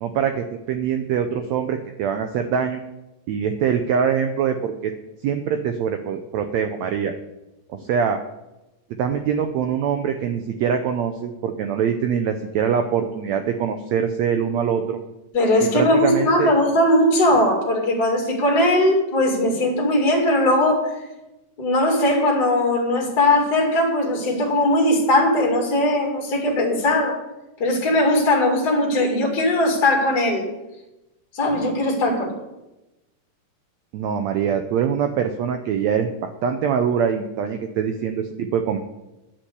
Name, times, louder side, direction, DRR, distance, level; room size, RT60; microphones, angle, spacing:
voice 1, 0.0-2.8 3.3-4.9 5.2-7.1 7.9-8.2 9.0-15.0 15.6-16.5 33.9-38.8, right 7 dB, 90° right, 7 dB, 1.5 m, -23 dB
voice 2, 15.3-20.9 21.6-27.2 27.6-30.5 31.3-32.3, left 1 dB, 30° left, -1 dB, 2.3 m, -19 dB
9.9 x 6.1 x 8.1 m, 0.97 s
omnidirectional pair, 4.0 m